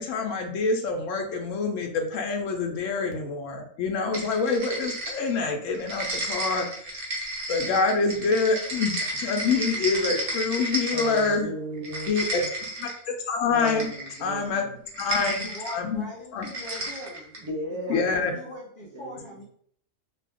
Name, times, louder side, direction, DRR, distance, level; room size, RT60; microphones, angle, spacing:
voice 1, 0.0-6.7 7.5-8.9 9.2-11.5 12.1-12.5 12.8-13.9 14.2-14.6 15.0-16.0 16.3-16.5 17.9-18.3, left 4 dB, 85° left, 3 dB, 1.0 m, -26 dB
sound 1, 4.1-5.4 5.7-11.4 11.7-13.0 13.6-14.3 14.9-15.8 16.4-17.5, right 1 dB, 50° right, 1.0 m, -32 dB
voice 2, 10.9-12.1 13.5-14.7 17.4-18.3 18.9-19.4, right 1 dB, 35° right, 0 dB, 0.5 m, -36 dB
voice 3, 15.4-17.3 17.9-19.4, left 1 dB, 55° left, -3 dB, 0.7 m, -41 dB
2.8 x 2.3 x 3.4 m, 0.63 s
omnidirectional pair, 1.3 m